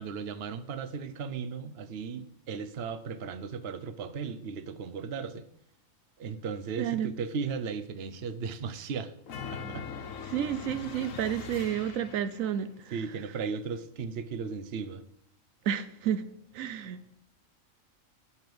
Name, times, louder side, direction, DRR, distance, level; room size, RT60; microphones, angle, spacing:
voice 1, 0.0-5.4 6.2-9.1 9.5-9.9 10.9-11.1 12.9-15.0, right 5 dB, 55° right, 1.0 m, -36 dB
voice 2, 6.8-7.1 10.2-13.0 15.6-16.2 16.5-17.2, right 9 dB, 80° right, 1.1 m, -31 dB
sound 1, 9.3-12.5, left 6 dB, 70° left, 1.4 m, -41 dB
12.0 x 5.6 x 7.8 m
omnidirectional pair, 1.4 m